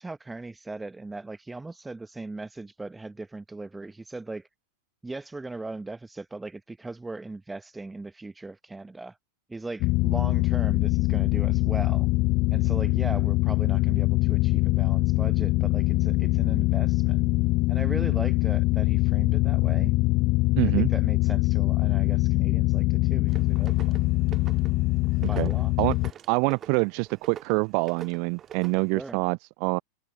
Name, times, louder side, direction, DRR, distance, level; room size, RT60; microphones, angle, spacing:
voice 1, 0.0-4.5 5.0-9.2 9.5-12.1 12.5-17.2 17.7-19.9 20.6-24.1 25.3-25.7 28.9-29.2, right 3 dB, 10° right, 1.3 m, -38 dB
sound 1, 9.8-26.1, left 21 dB, 40° left, 0.5 m, -23 dB
voice 2, 20.6-20.9 25.2-25.5 25.8-26.0 26.3-29.8, right 38 dB, 45° right, 0.4 m, -26 dB
sound 2, 23.3-29.1, right 9 dB, 25° right, 2.5 m, -46 dB
figure-of-eight pair, 90°, 0 cm